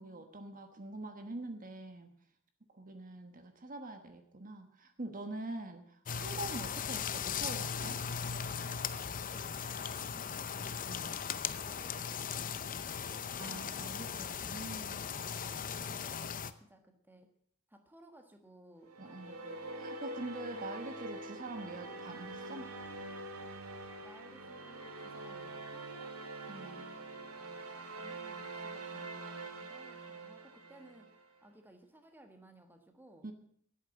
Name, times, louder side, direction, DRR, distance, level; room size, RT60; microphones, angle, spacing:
voice 1, 0.0-2.1 2.7-8.0 10.9-11.1 13.4-15.0 19.0-19.3 19.8-22.7 26.5-26.9 33.2-33.3, right 2 dB, 40° right, 7 dB, 1.2 m, -44 dB
sound 1, 6.1-16.5, left 7 dB, 40° left, 0.6 m, -38 dB
voice 2, 9.2-9.5 9.8-10.5 11.6-13.6 15.2-17.3 17.7-19.8 24.0-26.2 26.5-27.0 28.0-33.3, right 1 dB, 10° right, 5 dB, 1.4 m, -59 dB
sound 2, 18.9-31.3, right 2 dB, 85° right, 1.9 m, -45 dB
11.0 x 8.4 x 8.6 m, 0.65 s
head